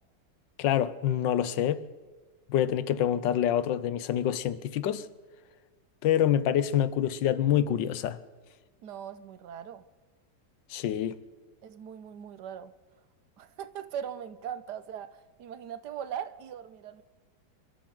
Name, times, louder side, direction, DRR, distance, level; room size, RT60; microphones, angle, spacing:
voice 1, 0.6-1.8 2.5-5.1 6.0-8.2 10.7-11.2, left 10 dB, 80° left, 1.4 m, -26 dB
voice 2, 8.8-9.9 11.6-12.7 13.4-17.0, right 9 dB, 70° right, 1.3 m, -40 dB
28.0 x 13.5 x 3.9 m
omnidirectional pair, 2.0 m